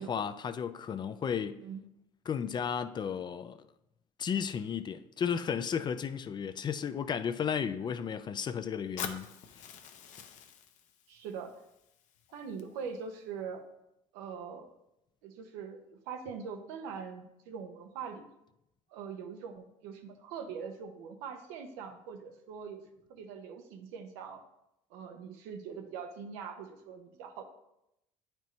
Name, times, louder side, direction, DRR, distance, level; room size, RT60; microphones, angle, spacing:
voice 1, 0.0-1.6 2.3-3.6 4.2-9.3, left 7 dB, 30° left, 0.4 m, -34 dB
Fire, 9.0-13.0, left 8 dB, 55° left, 0.7 m, -45 dB
voice 2, 11.1-11.6 12.3-13.6 14.1-14.7 15.2-18.3 18.9-22.8 23.1-24.4 24.9-27.4, right 6 dB, 90° right, 0.9 m, -42 dB
9.0 x 4.5 x 3.1 m
supercardioid pair, 105°, 15 cm